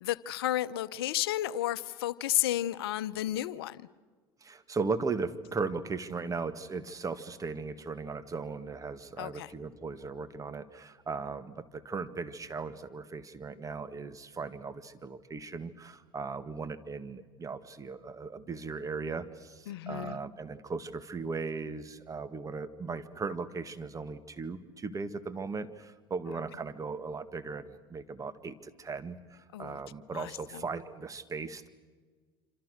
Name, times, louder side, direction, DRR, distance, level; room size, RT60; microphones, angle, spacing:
voice 1, 0.0-3.8 9.2-9.5 19.7-20.2 29.5-29.8 30.1-30.6, left 14 dB, 80° left, 0.8 m, -32 dB
voice 2, 4.4-31.7, right 4 dB, 25° right, 1.9 m, -37 dB
27.0 x 26.5 x 6.5 m
hypercardioid pair, 80°, 12 cm